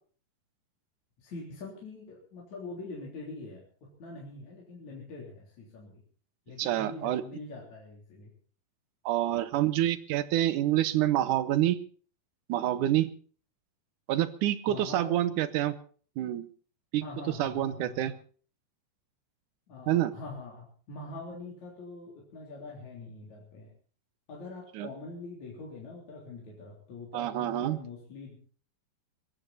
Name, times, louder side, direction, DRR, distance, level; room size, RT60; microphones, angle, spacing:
voice 1, 1.2-6.0 6.5-8.3 14.7-15.3 17.0-18.1 19.7-23.7 24.3-28.5, left 3 dB, 55° left, -2 dB, 4.7 m, -44 dB
voice 2, 6.6-7.2 9.1-11.8 12.5-13.1 14.1-15.7 16.2-16.5 16.9-17.0 17.4-18.1 19.9-20.1 24.7-24.9 27.1-27.8, right 13 dB, 70° right, 14 dB, 2.3 m, -27 dB
22.0 x 15.0 x 4.2 m, 0.42 s
omnidirectional pair, 4.1 m